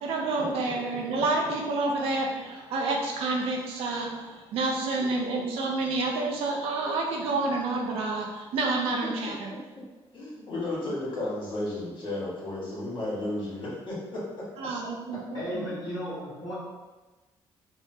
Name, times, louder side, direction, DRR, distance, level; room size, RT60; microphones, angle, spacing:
voice 1, 0.0-9.5 14.6-15.7, right 3 dB, 85° right, 0 dB, 0.6 m, -29 dB
voice 2, 10.1-14.5, left 1 dB, 55° left, -6 dB, 1.5 m, -33 dB
voice 3, 15.3-16.5, equal, 40° left, -11 dB, 1.3 m, -34 dB
3.6 x 2.1 x 2.7 m, 1.2 s
cardioid pair, 90°, 10 cm